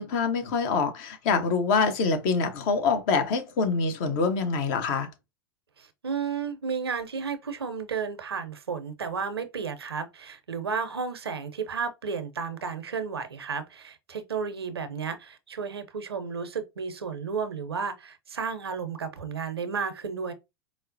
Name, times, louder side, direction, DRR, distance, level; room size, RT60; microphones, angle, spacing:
voice 1, 0.0-5.1, left 4 dB, 55° left, 0.8 m, -25 dB
voice 2, 5.8-20.3, right 5 dB, 90° right, 0.6 m, -33 dB
4.5 x 2.0 x 2.6 m
hypercardioid pair, 90°, 13 cm